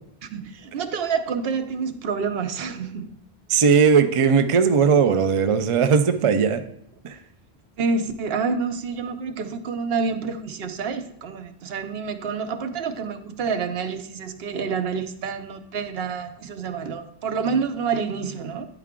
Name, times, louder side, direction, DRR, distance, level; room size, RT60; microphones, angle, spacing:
voice 1, 0.2-3.1 7.8-18.7, right 5 dB, 70° right, 8 dB, 0.9 m, -28 dB
voice 2, 3.5-6.6 7.0-7.2, right 6 dB, 50° right, 9 dB, 0.4 m, -18 dB
9.9 x 4.7 x 3.6 m, 0.71 s
omnidirectional pair, 1.1 m